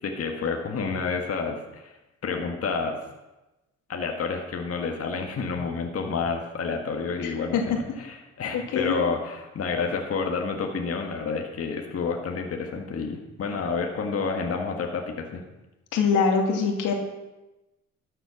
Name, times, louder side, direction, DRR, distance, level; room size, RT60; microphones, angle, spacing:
voice 1, 0.0-1.9 2.2-3.0 3.9-15.4, left 5 dB, 50° left, 2 dB, 1.8 m, -29 dB
voice 2, 7.2-7.8 8.5-9.0 15.9-16.9, left 5 dB, 90° left, 2 dB, 2.4 m, -24 dB
13.0 x 7.8 x 6.4 m, 1.0 s
cardioid pair, 90°, 30 cm